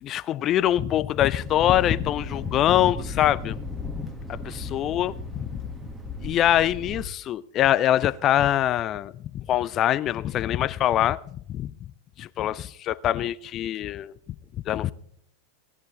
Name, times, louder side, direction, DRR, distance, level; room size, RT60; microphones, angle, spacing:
voice 1, 0.0-3.6 4.3-5.5 6.2-11.7 12.2-14.1 14.7-14.9, left 12 dB, 30° left, 0.4 m, -24 dB
Thunder, 1.4-7.0, left 2 dB, 10° right, 1.6 m, -35 dB
17.5 x 11.0 x 3.9 m
figure-of-eight pair, 90°, 0 cm